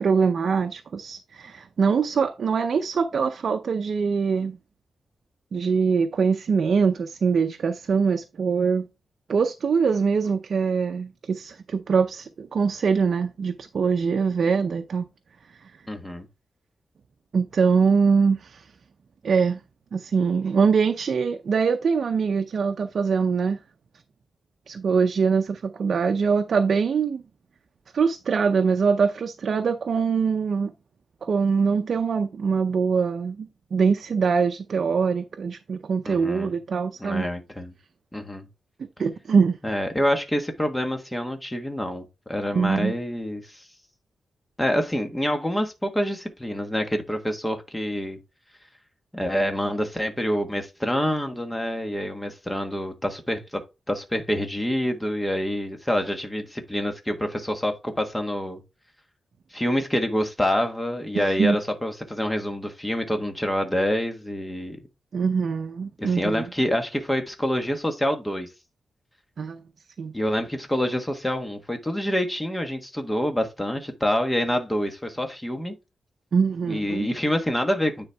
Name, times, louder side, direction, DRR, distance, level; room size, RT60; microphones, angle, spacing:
voice 1, 0.0-4.6 5.5-8.9 9.3-15.1 17.3-18.6 19.2-19.6 19.9-23.6 24.7-27.2 27.9-30.7 31.2-37.2 39.0-39.6 42.5-42.9 61.2-61.6 65.1-66.4 69.4-69.6 70.0-70.1 76.3-77.1, right 5 dB, 60° right, 0.6 m, -23 dB
voice 2, 15.9-16.3 36.1-36.5 37.0-37.7 38.1-38.5 39.6-43.6 44.6-48.2 49.1-53.6 53.9-58.6 59.5-64.8 66.0-68.5 70.1-75.7 76.7-78.1, equal, 10° left, 1.3 m, -27 dB
9.8 x 4.1 x 3.4 m
wide cardioid pair, 125°, 0 cm